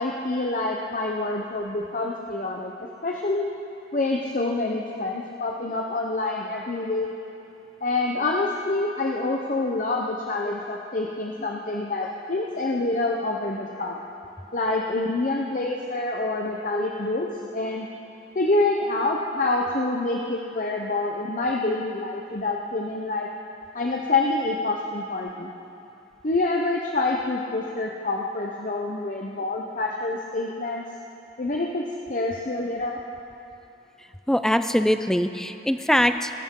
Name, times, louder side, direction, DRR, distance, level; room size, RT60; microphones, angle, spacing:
voice 1, 0.0-3.5 3.9-7.1 7.8-14.0 14.5-17.9 18.3-23.3 23.7-25.5 26.2-30.8 31.4-33.0, left 2 dB, 45° left, 0 dB, 0.8 m, -27 dB
voice 2, 34.3-36.3, equal, 5° left, 9 dB, 0.4 m, -22 dB
20.5 x 11.0 x 3.8 m, 2.8 s
head